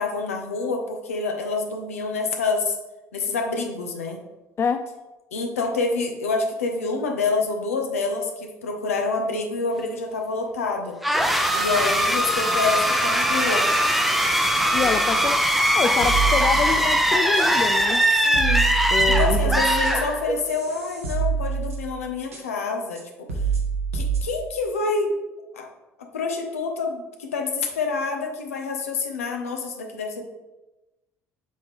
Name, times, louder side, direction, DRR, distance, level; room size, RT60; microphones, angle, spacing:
voice 1, 0.0-2.8 3.1-4.2 5.3-11.0 11.5-13.7 18.2-18.7 19.1-23.3 23.9-25.1 25.5-25.7 26.1-30.3, left 4 dB, 75° left, 3 dB, 0.8 m, -27 dB
voice 2, 4.6-4.9 14.7-15.5 15.7-18.1 18.9-19.6, left 6 dB, 30° left, 10 dB, 0.3 m, -26 dB
sound 1, 11.0-20.6, equal, ahead, 0.7 m, -21 dB
sound 2, 14.8-15.1 15.4-17.0 17.3-17.4 18.0-18.1 18.3-22.0 22.3-22.4 23.0-23.1 23.3-24.2, right 6 dB, 75° right, 1.1 m, -27 dB
7.6 x 3.7 x 3.5 m, 1.1 s
figure-of-eight pair, 55°, 8 cm